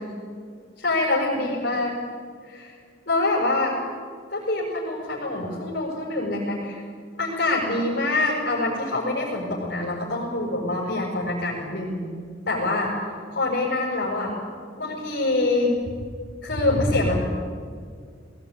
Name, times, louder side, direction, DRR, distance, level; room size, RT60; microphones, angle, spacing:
voice 1, 0.8-1.9 2.4-2.7 3.1-3.7 4.3-6.8 7.2-12.0 12.5-13.0 13.3-14.3 14.8-15.7 16.4-17.2, left 2 dB, 55° left, -5 dB, 6.6 m, -25 dB
20.0 x 19.5 x 10.0 m, 2.1 s
head